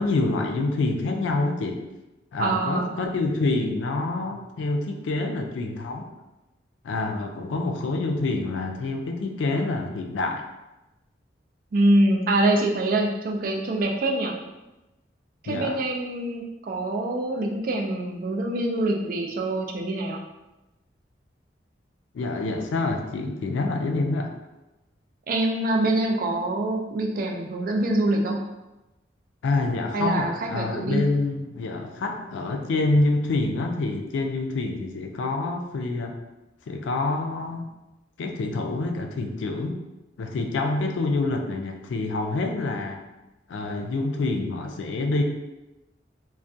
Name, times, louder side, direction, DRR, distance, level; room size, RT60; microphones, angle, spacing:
voice 1, 0.0-1.8 2.3-6.1 6.8-10.4 15.5-15.8 22.1-24.3 29.4-36.2 36.7-37.7 38.2-39.8 40.2-43.0 43.5-45.2, left 2 dB, 90° left, 4 dB, 0.3 m, -27 dB
voice 2, 2.4-3.0 11.7-14.3 15.4-20.2 25.3-28.4 29.9-31.0, right 1 dB, 50° right, 1 dB, 0.3 m, -24 dB
2.3 x 2.1 x 2.6 m, 1.0 s
head